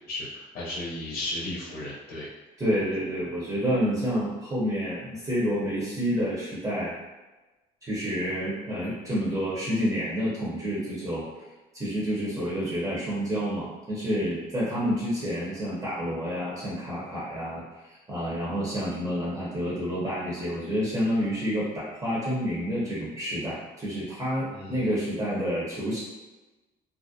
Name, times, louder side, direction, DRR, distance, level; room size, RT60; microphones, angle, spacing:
voice 1, 0.1-2.3 24.5-24.9, left 1 dB, 55° left, -6 dB, 0.7 m, -35 dB
voice 2, 2.6-6.9 7.8-11.3 11.7-26.0, equal, 20° right, -7 dB, 0.7 m, -29 dB
2.4 x 2.0 x 2.6 m, 1.1 s
cardioid pair, 110°, 17 cm